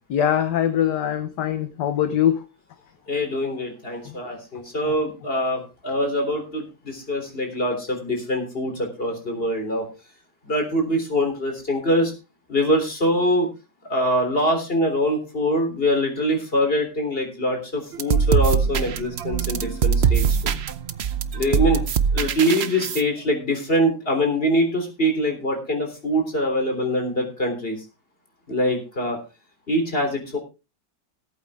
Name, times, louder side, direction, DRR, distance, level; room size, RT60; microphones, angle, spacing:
voice 1, 0.1-2.4, left 10 dB, 65° left, 10 dB, 1.4 m, -22 dB
voice 2, 3.1-9.9 10.5-12.1 12.5-13.5 13.9-20.5 21.3-21.8 22.1-27.8 28.5-29.2 29.7-30.4, equal, 30° left, 4 dB, 3.8 m, -24 dB
sound 1, 17.9-23.0, right 7 dB, 80° right, 0.5 m, -22 dB
18.0 x 8.6 x 3.6 m, 0.29 s
omnidirectional pair, 2.1 m